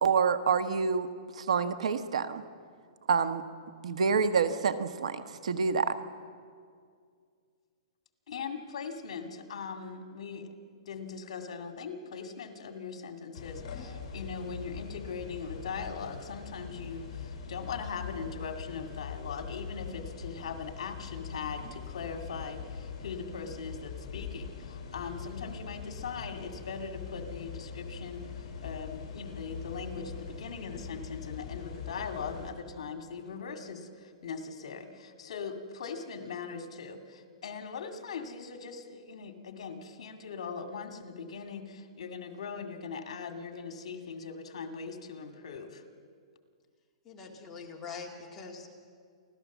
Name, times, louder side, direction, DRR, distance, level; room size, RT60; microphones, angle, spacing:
voice 1, 0.0-2.4 3.1-3.4 3.8-6.0, right 5 dB, 85° right, 11 dB, 1.3 m, -27 dB
voice 2, 8.3-45.8, left 5 dB, 70° left, 6 dB, 2.2 m, -40 dB
sound 1, 13.3-32.5, left 6 dB, 45° left, 4.9 m, -42 dB
voice 3, 47.1-48.7, left 5 dB, 10° left, -2 dB, 2.0 m, -43 dB
29.0 x 12.5 x 7.3 m, 2.2 s
hypercardioid pair, 170°, 3 cm